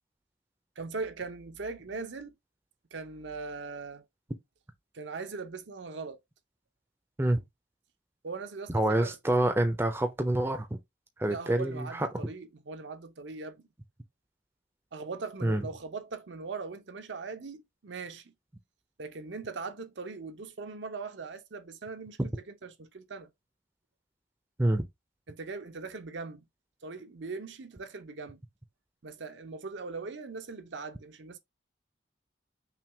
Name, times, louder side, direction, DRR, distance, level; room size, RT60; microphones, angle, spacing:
voice 1, 0.8-2.3 2.9-4.0 4.9-6.2 8.2-9.2 11.3-13.6 14.9-18.3 19.0-22.2 22.5-23.3 25.3-26.4 26.8-28.4 29.0-31.4, right 4 dB, 75° right, 0.7 m, -40 dB
voice 2, 8.7-10.7 11.2-12.1 15.4-15.7 22.2-22.3 24.6-24.9, right 1 dB, 10° right, 0.5 m, -27 dB
5.8 x 2.3 x 3.3 m
head